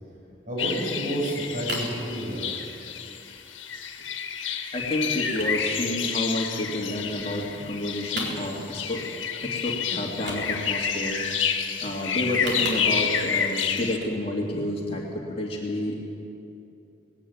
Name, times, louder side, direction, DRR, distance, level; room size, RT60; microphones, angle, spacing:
voice 1, 0.4-2.5 6.7-6.9 7.1-7.3, right 1 dB, 40° right, -4 dB, 7.5 m, -30 dB
sound 1, 0.6-14.0, left 7 dB, 85° left, 1.6 m, -29 dB
sound 2, 1.4-2.0 2.4-2.7 3.1-3.2 3.4-3.6 3.9-4.4 4.9-5.1 5.3-6.6 7.0-7.8 8.0-8.9 9.2-9.3 9.6-9.8 10.1-10.9 12.1-13.2 13.9-14.2 14.6-14.7, right 1 dB, 60° right, 4.1 m, -36 dB
voice 2, 4.7-9.0 9.4-11.2 11.8-15.9, left 1 dB, 30° left, -2 dB, 2.5 m, -30 dB
19.5 x 17.0 x 9.6 m, 2.7 s
head